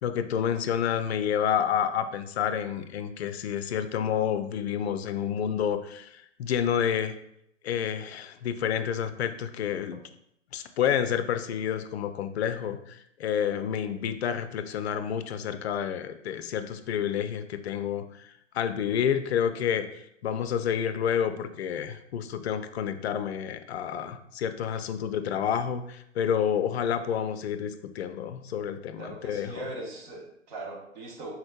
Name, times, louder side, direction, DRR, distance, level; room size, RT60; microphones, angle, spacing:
voice 1, 0.0-7.1 7.6-10.0 10.5-29.7, left 8 dB, 55° left, 10 dB, 0.5 m, -29 dB
voice 2, 29.0-31.3, right 2 dB, 40° right, -1 dB, 1.1 m, -40 dB
4.3 x 3.9 x 2.3 m, 0.75 s
figure-of-eight pair, 110°, 38 cm